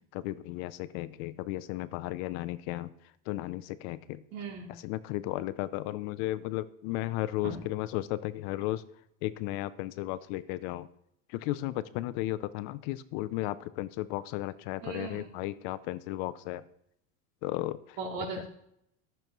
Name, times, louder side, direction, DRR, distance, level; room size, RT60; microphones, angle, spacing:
voice 1, 0.1-2.9 3.3-4.2 4.8-8.8 9.2-10.9 11.3-16.6 17.4-18.0 18.4-18.5, left 16 dB, 55° left, 15 dB, 0.5 m, -34 dB
voice 2, 4.3-4.7 7.4-7.6 14.8-15.4 18.0-18.4, right 3 dB, 75° right, -1 dB, 3.0 m, -37 dB
13.0 x 6.8 x 3.0 m, 0.75 s
supercardioid pair, 140°, 37 cm